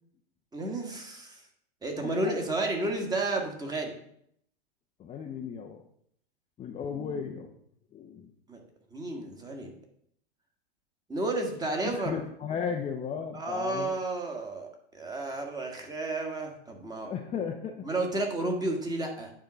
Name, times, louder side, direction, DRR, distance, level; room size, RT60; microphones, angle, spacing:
voice 1, 0.5-1.5 1.8-3.9 8.5-8.6 8.9-9.7 11.1-12.2 13.3-14.7 14.9-17.1 17.8-19.3, right 2 dB, 10° right, 2 dB, 1.6 m, -32 dB
voice 2, 2.0-2.4 5.0-5.8 6.6-7.5 7.9-8.3 11.8-14.0 17.0-17.8, left 7 dB, 20° left, 2 dB, 0.7 m, -35 dB
9.3 x 3.8 x 6.1 m, 0.69 s
hypercardioid pair, 115°, 32 cm